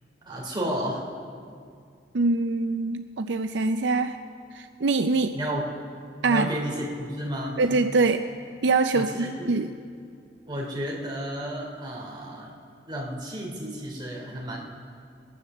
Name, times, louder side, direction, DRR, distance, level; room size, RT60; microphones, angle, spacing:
voice 1, 0.2-1.1 5.3-5.7 6.3-7.6 8.9-9.6 10.5-12.5 12.9-14.6, equal, 25° right, -3 dB, 3.2 m, -32 dB
voice 2, 2.1-4.2 4.5-5.4 6.2-6.5 7.6-8.3 8.6-9.7, right 3 dB, 70° right, 7 dB, 0.5 m, -24 dB
21.0 x 10.0 x 6.8 m, 2.3 s
head